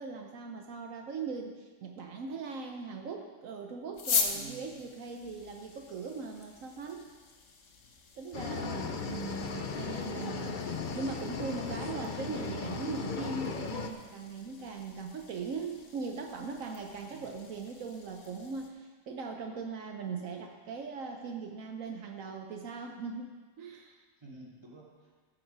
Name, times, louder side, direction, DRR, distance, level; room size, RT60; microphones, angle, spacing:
voice 1, 0.0-7.1 8.2-10.7 10.9-24.0, right 4 dB, 75° right, 3 dB, 1.2 m, -40 dB
sound 1, 3.9-18.7, left 5 dB, 65° left, 1.5 m, -41 dB
voice 2, 4.3-4.8 8.4-9.5 17.1-17.4 24.2-25.1, right 2 dB, 20° right, -6 dB, 2.9 m, -50 dB
sound 2, 8.3-13.9, left 5 dB, 45° left, 0.8 m, -36 dB
15.0 x 8.4 x 4.6 m, 1.4 s
omnidirectional pair, 1.4 m